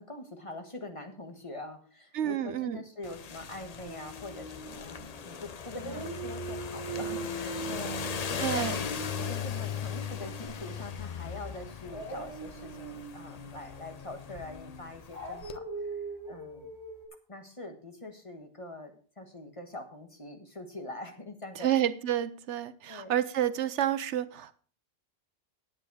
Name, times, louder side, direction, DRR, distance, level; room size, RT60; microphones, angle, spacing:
voice 1, 0.0-8.9 9.2-16.7 17.3-21.7 22.9-23.1, left 2 dB, 30° left, 1.5 m, -44 dB
voice 2, 2.1-2.8 8.4-8.8 21.6-24.6, right 11 dB, 75° right, 1.0 m, -29 dB
sound 1, 3.0-15.6, left 7 dB, 45° left, 0.6 m, -38 dB
Dog, 3.8-5.4 5.7-10.8 11.8-17.1, right 3 dB, 35° right, 3.7 m, -42 dB
10.0 x 9.0 x 4.8 m
omnidirectional pair, 1.2 m